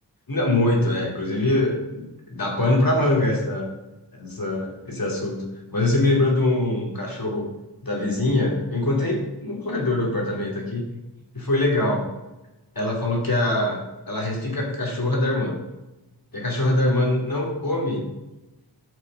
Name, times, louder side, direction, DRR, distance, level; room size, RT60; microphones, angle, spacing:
voice 1, 0.3-3.7 4.1-5.5 5.7-7.5 7.8-10.9 11.3-12.1 12.7-13.8 14.1-15.6 16.3-18.1, left 2 dB, 50° left, -1 dB, 3.0 m, -23 dB
9.1 x 6.6 x 5.5 m, 1.0 s
wide cardioid pair, 50°, 43 cm